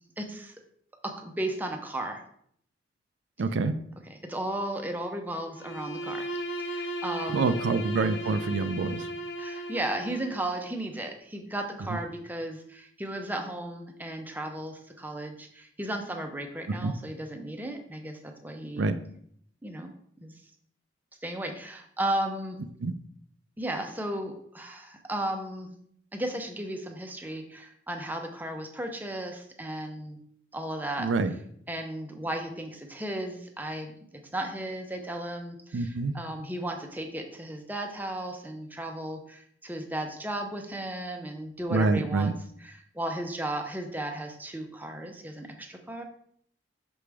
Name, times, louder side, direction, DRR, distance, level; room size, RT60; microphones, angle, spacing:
voice 1, 0.2-0.5 1.0-2.2 4.0-6.3 6.6-7.6 9.4-18.8 19.6-19.9 20.2-20.3 21.2-22.6 23.6-25.7 26.1-30.2 30.5-31.4 31.7-34.0 34.3-46.0, right 1 dB, 10° right, 4 dB, 0.7 m, -35 dB
voice 2, 3.4-3.8 7.3-9.1 16.8-16.9 18.8-19.0 22.8-22.9 31.0-31.3 35.7-36.1 41.7-42.3, right 3 dB, 85° right, 9 dB, 0.4 m, -26 dB
Bowed string instrument, 5.5-10.5, right 1 dB, 80° left, 0.8 m, -36 dB
6.1 x 4.9 x 3.4 m, 0.67 s
head